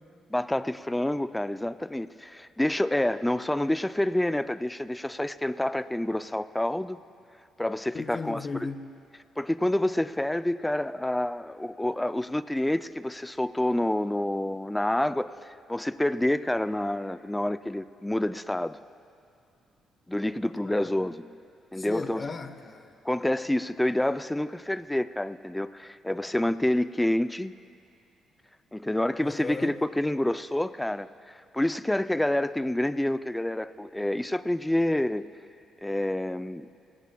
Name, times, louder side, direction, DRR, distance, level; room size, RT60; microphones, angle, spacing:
voice 1, 0.3-7.0 7.6-8.5 9.4-18.8 20.1-21.1 21.7-22.3 23.0-27.5 28.7-35.3 35.8-36.7, left 1 dB, 10° left, 13 dB, 0.4 m, -28 dB
voice 2, 7.9-8.9 20.6-21.1 21.8-22.9 29.2-29.8, left 4 dB, 35° left, 7 dB, 1.0 m, -36 dB
27.0 x 16.5 x 2.3 m, 2.4 s
cardioid pair, 90°, 0 cm